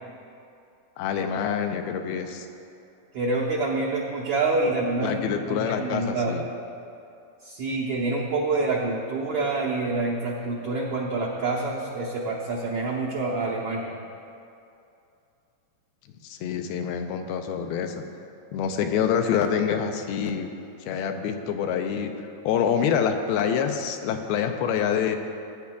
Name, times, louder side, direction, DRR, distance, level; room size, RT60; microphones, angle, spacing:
voice 1, 1.0-2.5 5.0-6.4 16.2-18.0 18.5-20.5 20.8-22.1 22.4-25.2, left 7 dB, 85° left, 6 dB, 2.6 m, -26 dB
voice 2, 3.1-6.4 7.4-13.9, right 3 dB, 70° right, -5 dB, 1.8 m, -27 dB
20.0 x 9.5 x 2.3 m, 2.6 s
omnidirectional pair, 4.3 m